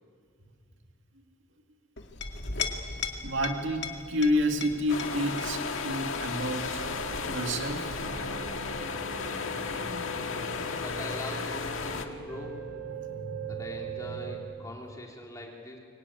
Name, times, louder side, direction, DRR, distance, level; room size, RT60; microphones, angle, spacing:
Chink clink, 2.0-9.1, left 5 dB, 55° left, 2.2 m, -39 dB
voice 1, 3.2-6.8 7.2-7.9, equal, 60° right, 4 dB, 2.3 m, -29 dB
sound 1, 4.9-12.1, left 4 dB, 75° left, 1.8 m, -34 dB
sound 2, 6.5-14.4, right 2 dB, 90° right, 4.6 m, -40 dB
voice 2, 10.5-12.6 13.4-15.8, left 1 dB, 15° left, 0 dB, 3.7 m, -42 dB
24.0 x 24.0 x 9.9 m, 2.2 s
head